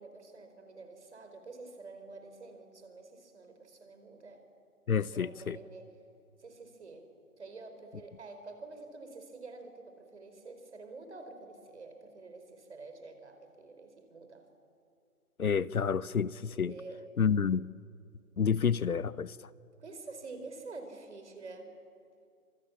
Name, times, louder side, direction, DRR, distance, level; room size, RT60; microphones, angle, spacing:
voice 1, 0.0-4.4 5.1-5.9 6.4-7.1 7.4-14.4 16.7-17.0 19.8-21.7, right 3 dB, 50° right, 4.8 m, -48 dB
voice 2, 4.9-5.6 15.4-16.8 17.2-17.7 18.4-19.5, left 6 dB, 70° left, 0.9 m, -29 dB
26.5 x 25.5 x 8.5 m
figure-of-eight pair, 170°, 44 cm